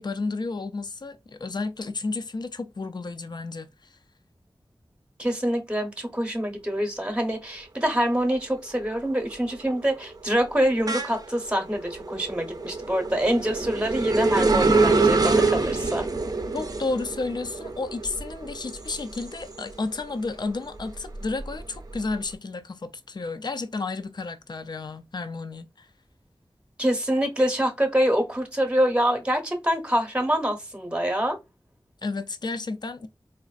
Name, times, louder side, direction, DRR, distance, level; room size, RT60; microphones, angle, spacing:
voice 1, 0.0-4.0 16.5-25.9 32.0-33.1, left 3 dB, 50° left, 0.4 m, -32 dB
voice 2, 5.2-16.0 26.8-31.4, equal, 10° right, 0.8 m, -25 dB
sound 1, 7.9-8.4 8.7-20.0 20.4-22.1, right 3 dB, 45° right, 0.5 m, -26 dB
4.0 x 2.5 x 2.3 m
wide cardioid pair, 65°, 9 cm